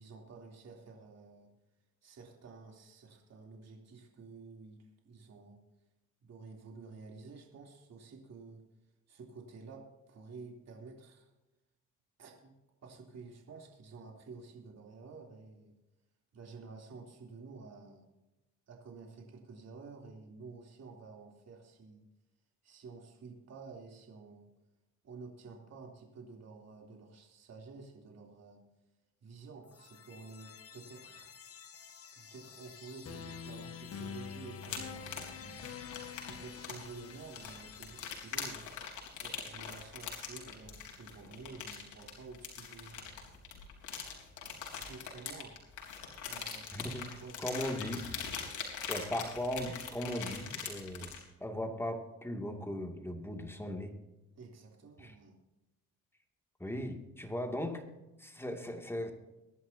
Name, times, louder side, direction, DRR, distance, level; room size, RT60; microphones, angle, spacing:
voice 1, 0.0-1.5 2.0-5.6 6.2-8.6 9.1-11.3 12.2-12.5 12.8-15.7 16.3-18.1 18.7-22.0 22.6-24.5 25.0-28.6 29.2-31.3 32.1-35.6 36.2-38.7 39.2-43.0 44.7-45.5 46.2-46.7 47.2-48.2 54.3-55.4, right 4 dB, 60° right, 0 dB, 3.4 m, -51 dB
sound 1, 29.6-39.6, left 6 dB, 50° left, 1.7 m, -48 dB
sound 2, 34.6-51.2, left 7 dB, 80° left, 3.9 m, -42 dB
voice 2, 46.7-48.0 48.9-54.0 55.0-55.1 56.6-57.9 58.2-59.1, equal, 10° left, 3 dB, 2.5 m, -38 dB
23.0 x 11.0 x 2.9 m, 1.0 s
cardioid pair, 90°, 30 cm